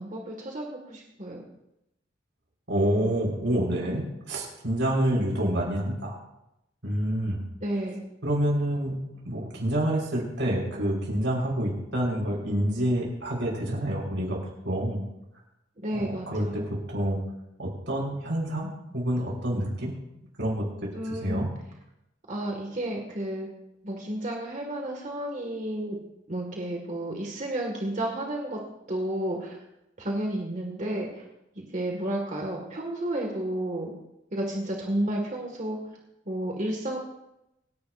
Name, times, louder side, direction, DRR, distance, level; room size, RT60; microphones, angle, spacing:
voice 1, 0.0-1.4 7.6-8.0 15.8-16.6 20.9-21.4 22.3-23.5 23.8-26.0 26.3-28.6 28.9-29.6 30.0-31.3 31.6-33.9 34.3-35.8 36.3-37.0, right 1 dB, 40° right, 0 dB, 1.9 m, -31 dB
voice 2, 2.7-6.2 6.8-7.4 8.2-9.0 9.2-14.4 14.6-15.0 15.9-17.2 17.6-19.9 20.4-21.5, right 1 dB, 70° right, -3 dB, 5.9 m, -28 dB
27.0 x 10.5 x 2.6 m, 0.88 s
head